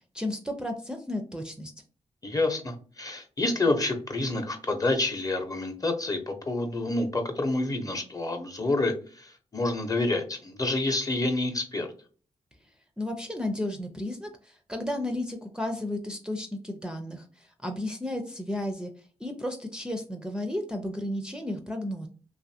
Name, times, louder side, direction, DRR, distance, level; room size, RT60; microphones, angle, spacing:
voice 1, 0.1-1.7 13.0-18.9 19.2-22.1, left 1 dB, 5° right, 4 dB, 0.5 m, -33 dB
voice 2, 2.2-11.9, left 2 dB, 30° left, 5 dB, 0.8 m, -28 dB
2.6 x 2.5 x 2.6 m, 0.40 s
cardioid pair, 55°, 12 cm